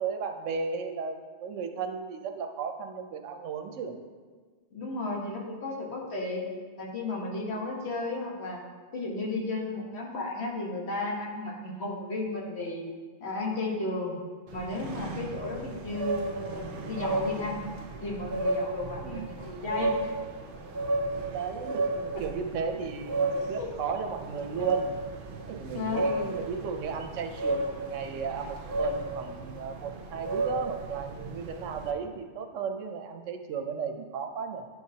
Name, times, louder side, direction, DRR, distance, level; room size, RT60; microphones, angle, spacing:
voice 1, 0.0-4.0 19.0-19.3 21.2-24.9 25.4-34.7, right 6 dB, 85° right, 5 dB, 0.9 m, -35 dB
voice 2, 4.7-6.5 6.8-8.6 8.9-12.9 13.2-14.2 14.5-17.5 18.0-19.9 23.6-23.7 25.7-26.1, left 2 dB, 60° left, -2 dB, 1.4 m, -34 dB
sound 1, 14.5-31.9, right 2 dB, 55° right, 0.7 m, -33 dB
10.5 x 4.7 x 2.8 m, 1.5 s
omnidirectional pair, 1.3 m